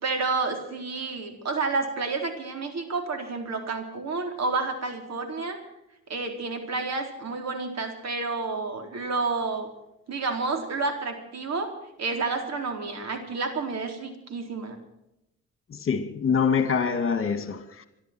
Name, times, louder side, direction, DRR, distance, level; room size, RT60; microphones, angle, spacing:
voice 1, 0.0-5.6 6.1-9.7 10.1-11.7 12.0-14.8, right 3 dB, 60° right, 4.1 m, -30 dB
voice 2, 15.7-17.9, left 6 dB, 45° left, 2.3 m, -25 dB
26.0 x 12.0 x 4.6 m
cardioid pair, 90°, 30 cm